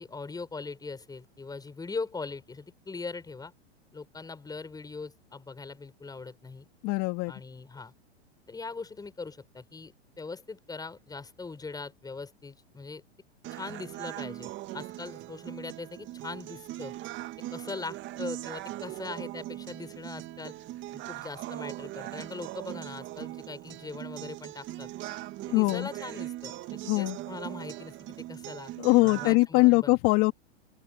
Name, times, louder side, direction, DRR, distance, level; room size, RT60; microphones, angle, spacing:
voice 1, 0.0-3.5 3.9-6.7 7.3-7.9 8.5-13.0 13.5-16.9 17.5-20.6 20.9-24.9 25.5-30.0, left 4 dB, 10° left, 6.9 m, -41 dB
voice 2, 6.8-7.3 25.5-25.9 26.9-27.2 28.8-30.3, left 25 dB, 45° left, 2.4 m, -22 dB
sound 1, 13.4-29.5, right 16 dB, 35° right, 2.2 m, -40 dB
open air
hypercardioid pair, 115°, 33 cm